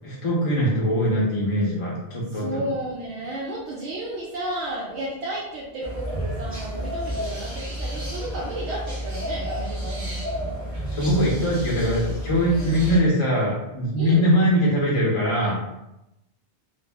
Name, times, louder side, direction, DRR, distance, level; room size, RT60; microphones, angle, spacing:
voice 1, 0.0-2.4 10.9-15.6, equal, 35° left, -5 dB, 0.6 m, -22 dB
voice 2, 2.3-10.6 12.5-12.8 14.0-14.3, right 1 dB, 75° right, -5 dB, 0.9 m, -33 dB
sound 1, 5.8-13.0, equal, 20° right, 0.5 m, -31 dB
2.4 x 2.0 x 3.4 m, 0.90 s
omnidirectional pair, 1.2 m